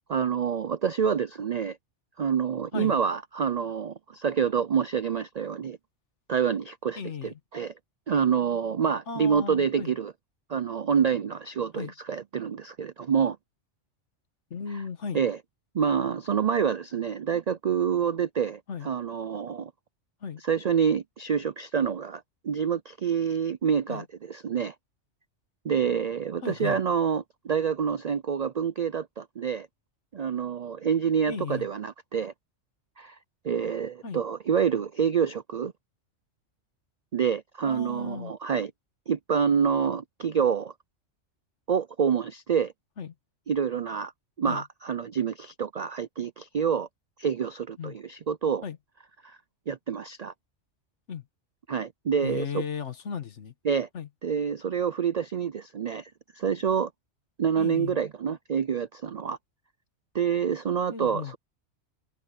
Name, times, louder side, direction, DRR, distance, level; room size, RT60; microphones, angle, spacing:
voice 1, 0.1-1.8 2.2-5.8 6.3-7.7 8.1-10.1 10.5-13.4 15.1-15.4 15.7-19.7 20.4-24.7 25.6-29.7 30.1-32.3 33.0-33.2 33.4-35.7 37.1-38.7 39.1-40.7 41.7-42.7 43.5-44.1 44.4-46.9 47.2-48.6 49.2-49.4 49.7-50.3 51.7-52.6 53.6-53.9 54.2-56.9 57.4-59.4 60.1-61.4, right 7 dB, 60° right, 0.4 m, -27 dB
voice 2, 7.0-7.3 9.1-9.9 11.7-11.9 14.5-15.2 18.7-18.9 20.2-20.4 23.9-24.0 26.4-26.8 31.3-31.7 34.0-34.2 37.6-38.3 43.0-43.1 44.5-44.6 47.8-48.0 48.6-48.8 51.1-51.2 52.2-53.5 53.9-54.1 57.6-58.0 60.9-61.3, left 6 dB, 70° left, 1.6 m, -35 dB
open air
omnidirectional pair, 1.3 m